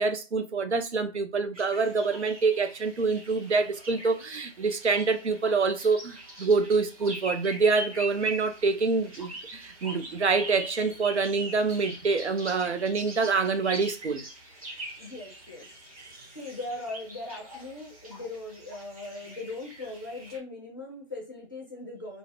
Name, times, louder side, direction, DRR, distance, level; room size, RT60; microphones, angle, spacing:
voice 1, 0.0-14.2, right 4 dB, 70° right, 0.6 m, -26 dB
sound 1, 1.5-20.4, right 1 dB, 30° right, 1.0 m, -42 dB
voice 2, 15.0-15.7 16.3-22.2, left 2 dB, 20° left, 0.5 m, -39 dB
3.8 x 2.0 x 2.9 m
figure-of-eight pair, 150°, 35 cm